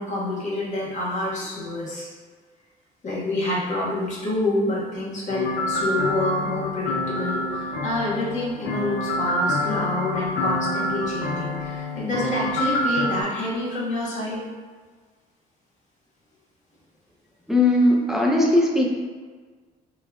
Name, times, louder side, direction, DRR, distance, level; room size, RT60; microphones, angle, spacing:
voice 1, 0.0-2.1 3.0-14.4, left 1 dB, 45° left, -7 dB, 1.4 m, -27 dB
sound 1, 5.3-13.2, left 1 dB, 75° left, 0.6 m, -27 dB
voice 2, 17.5-18.9, left 1 dB, ahead, -2 dB, 0.5 m, -18 dB
5.4 x 2.4 x 2.3 m, 1.5 s
cardioid pair, 110°, 17 cm